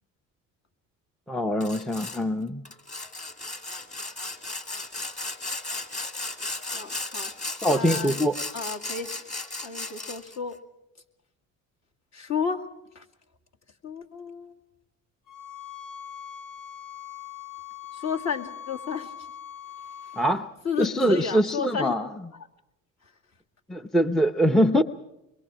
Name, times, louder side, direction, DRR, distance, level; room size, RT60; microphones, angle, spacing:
voice 1, 1.3-2.6 7.6-8.4 20.2-20.5 20.8-22.1 23.7-24.8, equal, ahead, 10 dB, 0.7 m, -23 dB
Sawing, 1.6-2.2 2.7-10.4, left 2 dB, 20° left, 2.4 m, -35 dB
voice 2, 6.7-7.3 7.7-8.2 8.5-9.1 9.6-10.6 12.1-12.7 12.9-13.1 13.8-14.6 17.9-19.1 20.0-20.2 20.6-22.0 23.0-23.1, left 6 dB, 45° left, 2 dB, 2.4 m, -32 dB
sound 1, 15.3-20.3, left 9 dB, 75° left, 2.4 m, -41 dB
24.5 x 22.5 x 6.2 m, 0.90 s
supercardioid pair, 85°, 37 cm